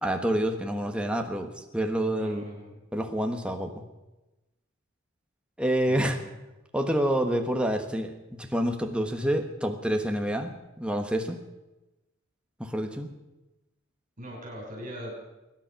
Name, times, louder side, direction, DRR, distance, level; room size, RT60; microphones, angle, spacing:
voice 1, 0.0-2.4 2.9-3.7 5.6-6.2 6.7-10.5 10.8-11.4 12.6-13.1, right 1 dB, 5° right, 4 dB, 1.2 m, -28 dB
voice 2, 2.1-2.8 5.9-6.2 14.2-15.2, equal, 40° right, -2 dB, 6.1 m, -40 dB
23.5 x 10.5 x 5.9 m, 1.0 s
head